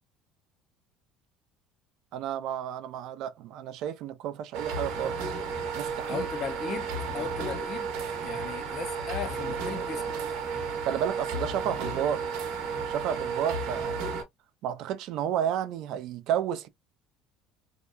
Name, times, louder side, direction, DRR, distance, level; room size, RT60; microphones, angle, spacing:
voice 1, 2.1-5.4 5.7-6.3 10.8-12.2 12.9-13.9 14.6-16.7, right 9 dB, 60° right, 0.4 m, -31 dB
sound 1, 4.5-14.2, right 5 dB, 80° right, 0.8 m, -33 dB
voice 2, 6.1-7.9 8.2-10.2, left 7 dB, 35° left, 0.5 m, -37 dB
2.7 x 2.2 x 2.2 m
cardioid pair, 155°, 0 cm